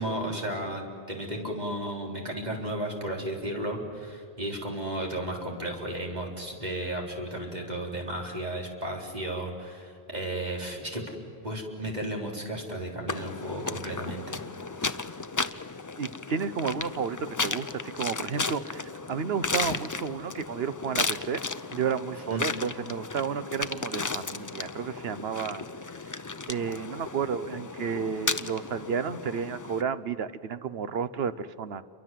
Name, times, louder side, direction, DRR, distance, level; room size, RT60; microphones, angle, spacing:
voice 1, 0.0-11.0 11.4-14.4 14.8-15.0 22.3-22.4, right 1 dB, 40° right, 0 dB, 4.1 m, -34 dB
sound 1, 13.1-29.8, left 3 dB, 25° left, 0.5 m, -34 dB
voice 2, 16.0-21.4 21.7-25.7 26.5-31.8, right 6 dB, 70° right, 13 dB, 1.1 m, -32 dB
28.5 x 23.5 x 7.6 m, 2.5 s
omnidirectional pair, 1.1 m